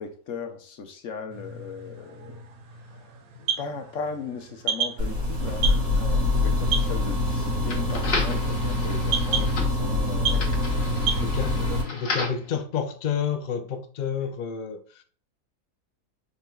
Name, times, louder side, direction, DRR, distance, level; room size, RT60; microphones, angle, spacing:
voice 1, 0.0-2.4 2.9-3.0 3.6-10.5, left 5 dB, 60° left, 1.0 m, -37 dB
sound 1, 1.3-11.2, right 7 dB, 70° right, 1.0 m, -34 dB
sound 2, 5.0-11.8, left 2 dB, 90° right, 2.7 m, -25 dB
sound 3, 6.6-12.5, left 3 dB, 45° left, 1.1 m, -35 dB
voice 2, 11.2-15.0, left 7 dB, 80° left, 0.4 m, -30 dB
5.3 x 4.4 x 2.3 m
omnidirectional pair, 1.6 m